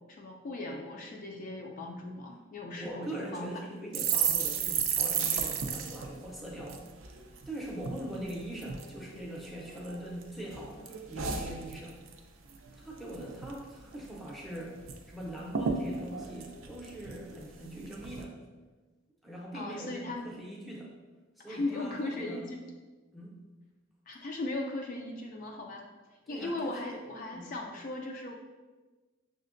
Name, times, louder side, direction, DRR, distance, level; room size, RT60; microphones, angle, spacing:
voice 1, 0.0-3.5 19.5-20.3 21.5-22.7 24.1-28.3, left 2 dB, 40° left, 1 dB, 0.3 m, -38 dB
voice 2, 2.7-6.8 7.5-12.0 12.7-14.8 15.1-18.4 19.2-20.9 21.4-22.4 23.1-23.4 26.3-27.0 27.3-27.5, right 1 dB, ahead, -3 dB, 0.6 m, -42 dB
sound 1, 3.9-7.5 7.8-8.0 8.3-8.9 9.4-10.2 10.5-12.2 12.5-12.7 13.0-13.6 13.9-14.0 14.3-15.0 15.2-15.3 15.5-17.4 17.9-18.2, right 7 dB, 80° right, 0.4 m, -33 dB
6.2 x 2.1 x 2.5 m, 1.3 s
head